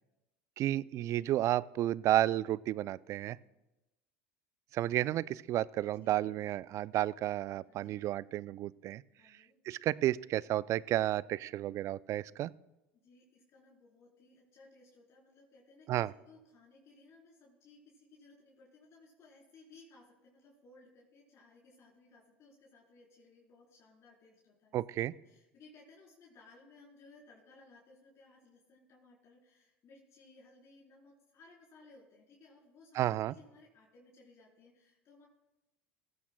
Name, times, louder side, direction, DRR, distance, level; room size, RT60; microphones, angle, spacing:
voice 1, 0.6-3.4 4.7-9.0 9.7-12.5 15.9-16.1 24.7-25.1 32.9-33.3, right 14 dB, 50° right, 20 dB, 0.3 m, -32 dB
voice 2, 6.0-6.4 7.6-8.0 9.2-9.6 12.9-35.3, left 3 dB, 45° left, -4 dB, 3.9 m, -60 dB
19.0 x 15.0 x 2.2 m, 0.99 s
hypercardioid pair, 80°, 7 cm